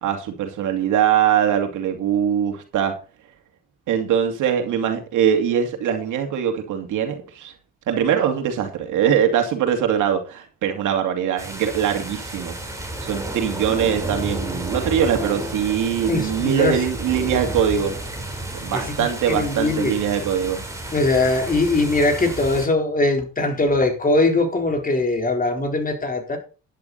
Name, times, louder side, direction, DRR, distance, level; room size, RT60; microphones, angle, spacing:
voice 1, 0.0-2.9 3.9-7.5 7.9-12.6 12.8-18.0 18.6-20.6, right 8 dB, 85° right, 2.6 m, -22 dB
sound 1, 11.4-22.7, right 1 dB, 10° right, 4.2 m, -31 dB
voice 2, 16.1-16.8 18.7-19.9 20.9-26.4, left 2 dB, 30° left, 4.0 m, -21 dB
11.0 x 11.0 x 4.2 m
cardioid pair, 90°, 30 cm